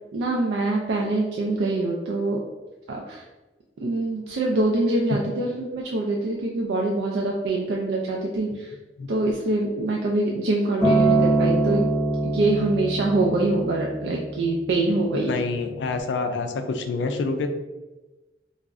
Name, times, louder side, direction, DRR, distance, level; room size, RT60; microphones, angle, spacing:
voice 1, 0.1-2.4 2.9-3.2 3.8-8.7 9.1-11.9 12.2-15.3, right 2 dB, 80° right, -1 dB, 0.4 m, -24 dB
Acoustic guitar, 10.8-15.1 15.9-16.0, right 2 dB, 15° left, 0.7 m, -23 dB
voice 2, 15.1-17.5, left 3 dB, 75° left, 6 dB, 0.3 m, -27 dB
2.4 x 2.0 x 3.5 m, 1.1 s
head